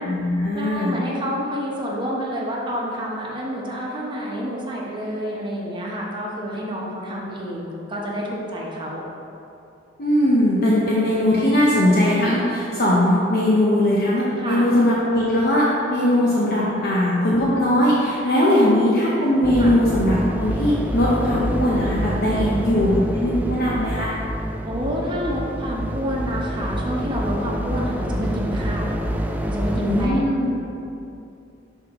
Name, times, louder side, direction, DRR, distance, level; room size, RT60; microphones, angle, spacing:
voice 1, 0.0-0.9 10.0-24.1 29.8-30.5, left 1 dB, 55° left, -6 dB, 0.8 m, -20 dB
voice 2, 0.5-9.0 14.4-14.7 16.8-17.0 18.6-18.8 19.6-19.7 22.3-22.9 24.6-28.9 29.5-30.3, equal, 25° right, -3 dB, 0.9 m, -28 dB
sound 1, 19.4-30.1, equal, 10° right, 0.3 m, -27 dB
6.6 x 4.8 x 3.6 m, 2.7 s
head